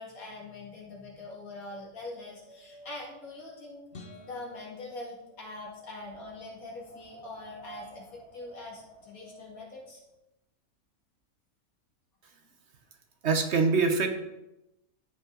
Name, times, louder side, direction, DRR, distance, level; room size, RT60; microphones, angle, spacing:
voice 1, 0.0-3.8 4.1-10.0, left 2 dB, 80° left, -3 dB, 2.6 m, -43 dB
Wind, 0.9-10.1, right 2 dB, 35° right, 2.3 m, -53 dB
sound 1, 3.9-6.3, left 2 dB, 50° left, 1.2 m, -52 dB
voice 2, 13.2-14.1, right 4 dB, 55° right, 6 dB, 1.2 m, -24 dB
12.5 x 5.4 x 3.9 m, 0.91 s
omnidirectional pair, 1.5 m